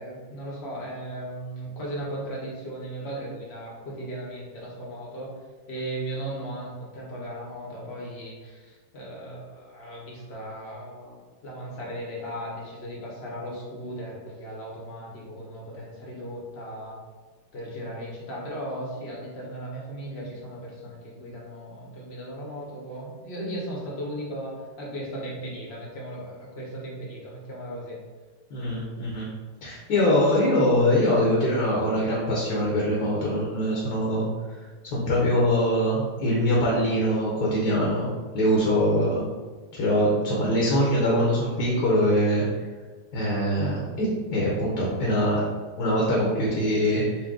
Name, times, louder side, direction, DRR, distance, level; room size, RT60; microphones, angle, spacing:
voice 1, 0.0-5.3 5.7-11.2 11.4-17.0 17.5-28.0, right 1 dB, 45° left, -4 dB, 0.9 m, -36 dB
voice 2, 28.5-29.3 29.6-34.2 34.9-38.1 38.3-39.2 39.7-42.4 43.1-45.4 45.8-47.3, equal, 65° left, -4 dB, 1.2 m, -23 dB
4.5 x 2.2 x 3.5 m, 1.4 s
omnidirectional pair, 2.0 m